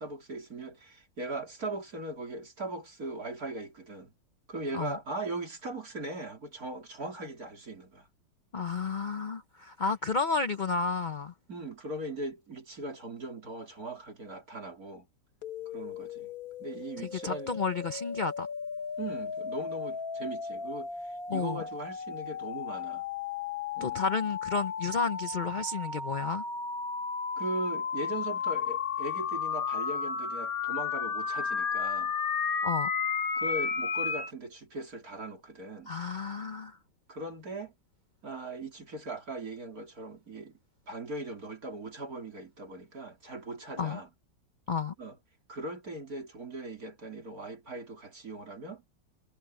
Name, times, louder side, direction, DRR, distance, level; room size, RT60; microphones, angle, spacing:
voice 1, 0.0-4.1 4.5-8.1 11.5-15.1 15.7-16.3 16.6-17.5 19.0-23.0 23.8-24.0 27.4-32.1 33.3-35.9 37.1-37.7 38.2-40.6 40.9-44.1 45.0-45.2 45.5-48.8, right 2 dB, 50° right, 4.1 m, -39 dB
voice 2, 8.5-11.3 17.0-18.5 21.3-21.6 23.8-26.4 32.6-32.9 35.9-36.8 43.8-44.0 44.7-44.9, left 4 dB, 75° left, 0.4 m, -31 dB
sound 1, 15.4-34.3, left 6 dB, 55° left, 1.9 m, -34 dB
omnidirectional pair, 1.9 m